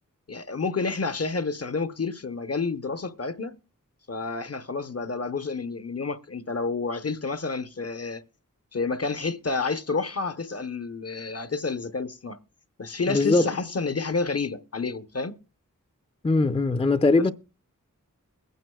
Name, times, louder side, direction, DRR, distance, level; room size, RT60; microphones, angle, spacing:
voice 1, 0.3-3.6 4.1-8.2 8.7-12.4 12.8-15.4, left 4 dB, 50° left, 0.7 m, -29 dB
voice 2, 13.1-13.5 16.2-17.3, left 3 dB, 20° left, 0.5 m, -21 dB
22.0 x 9.3 x 2.3 m
wide cardioid pair, 50°, 32 cm